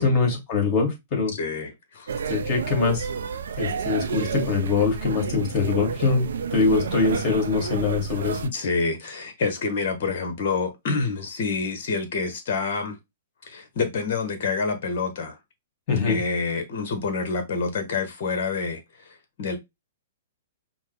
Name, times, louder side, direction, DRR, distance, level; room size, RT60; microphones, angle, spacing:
voice 1, 0.0-1.3 2.3-3.1 3.6-6.3 6.5-8.4 15.9-16.2, left 4 dB, 35° left, 2.3 m, -23 dB
voice 2, 1.3-2.1 7.0-7.1 8.4-13.0 13.4-15.4 16.1-19.6, left 4 dB, 55° left, 1.0 m, -28 dB
sound 1, 2.1-8.5, right 6 dB, 70° right, 0.4 m, -30 dB
5.2 x 2.1 x 3.3 m
hypercardioid pair, 120°, 0 cm